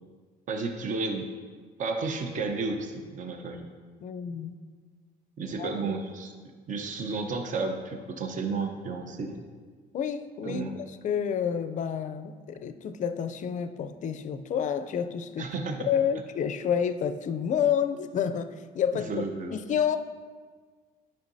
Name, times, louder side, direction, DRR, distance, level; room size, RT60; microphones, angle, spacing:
voice 1, 0.5-1.2 1.8-3.7 5.4-6.3 6.7-9.4 10.4-10.7 15.4-15.9 18.9-19.6, right 4 dB, 50° right, 5 dB, 0.8 m, -32 dB
voice 2, 4.0-4.5 5.6-6.0 9.9-10.6 11.0-15.5 15.9-19.3 19.5-20.0, left 8 dB, 45° left, 11 dB, 0.4 m, -29 dB
10.0 x 5.6 x 2.7 m, 1.5 s
cardioid pair, 110°, 17 cm